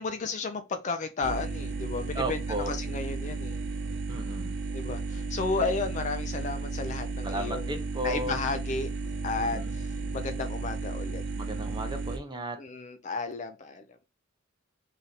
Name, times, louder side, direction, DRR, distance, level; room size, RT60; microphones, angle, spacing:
voice 1, 0.0-3.6 4.7-8.9 9.2-11.2 12.6-14.0, left 4 dB, 35° left, 0.4 m, -33 dB
sound 1, 1.2-12.2, right 3 dB, 55° right, 0.8 m, -34 dB
voice 2, 2.1-2.7 4.1-4.6 7.2-8.3 9.4-9.7 11.4-12.6, right 1 dB, 20° right, 0.6 m, -34 dB
3.2 x 2.8 x 3.8 m
head